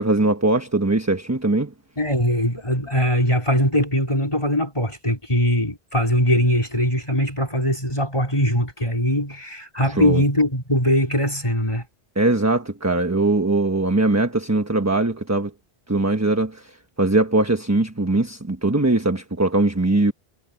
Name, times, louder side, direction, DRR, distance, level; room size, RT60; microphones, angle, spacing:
voice 1, 0.0-1.7 9.9-10.2 12.2-15.5 15.9-16.6 17.0-20.1, right 2 dB, 15° right, 1.2 m, -20 dB
voice 2, 2.0-11.8, equal, 30° left, 4.1 m, -21 dB
omnidirectional pair, 1.1 m